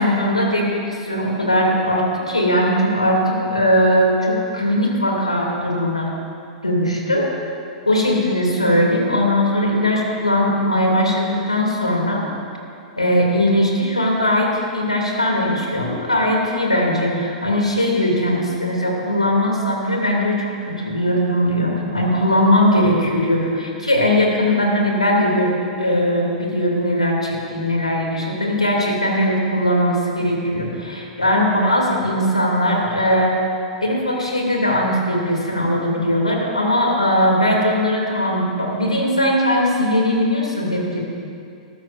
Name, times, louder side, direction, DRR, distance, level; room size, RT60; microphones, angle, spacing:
voice 1, 0.0-6.1 6.6-7.5 7.9-12.2 13.0-25.5 25.8-33.3 33.8-41.0, left 1 dB, 90° left, -1 dB, 2.6 m, -19 dB
20.5 x 13.0 x 2.6 m, 2.4 s
figure-of-eight pair, 100°, 3 cm